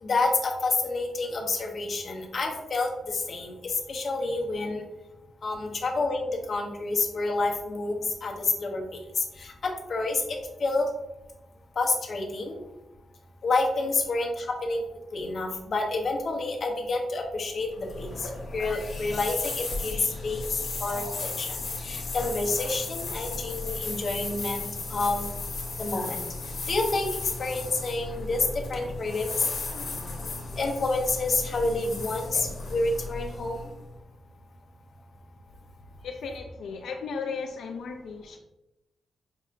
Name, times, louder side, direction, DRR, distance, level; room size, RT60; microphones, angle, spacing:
voice 1, 0.0-4.8 5.4-8.8 9.2-10.9 11.8-12.6 13.4-14.8 15.1-21.6 21.8-25.3 25.8-26.2 26.7-27.1 27.4-29.5 30.6-33.6, left 3 dB, 50° left, 0 dB, 0.8 m, -29 dB
sound 1, 17.7-33.9, left 3 dB, 65° left, 1.1 m, -35 dB
voice 2, 36.0-38.4, left 5 dB, 85° left, 3 dB, 0.3 m, -35 dB
5.3 x 2.9 x 2.5 m, 0.97 s
wide cardioid pair, 125°, 0 cm